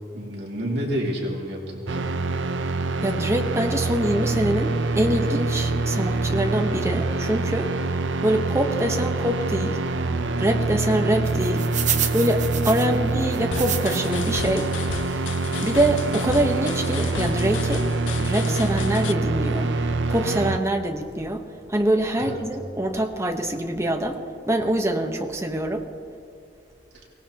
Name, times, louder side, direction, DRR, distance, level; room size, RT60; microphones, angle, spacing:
voice 1, 0.1-2.1 12.9-13.2 22.2-22.4 26.9-27.0, equal, 65° right, -3 dB, 2.6 m, -30 dB
sound 1, 1.9-20.6, right 3 dB, 85° right, 0.7 m, -25 dB
voice 2, 3.0-7.7 8.2-9.8 10.4-11.7 12.1-14.7 15.6-19.7 20.1-25.9, right 1 dB, 15° right, 3 dB, 1.2 m, -24 dB
sound 2, 11.2-14.3 14.7-14.8 15.5-15.7 16.2-16.3 16.5-16.7, right 9 dB, 45° right, 1.0 m, -29 dB
sound 3, 13.5-19.1, left 7 dB, 85° left, 0.4 m, -34 dB
23.5 x 18.0 x 3.0 m, 2.4 s
head